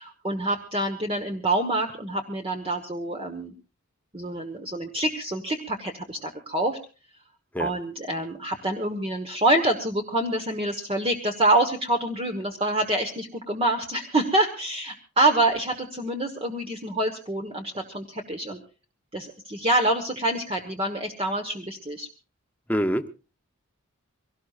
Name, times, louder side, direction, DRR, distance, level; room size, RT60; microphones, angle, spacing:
voice 1, 0.0-3.5 4.1-6.8 7.6-18.6 19.1-22.1, right 1 dB, 25° right, 3 dB, 1.3 m, -26 dB
voice 2, 22.7-23.1, equal, 10° left, 8 dB, 0.8 m, -25 dB
24.0 x 18.0 x 2.5 m, 0.34 s
head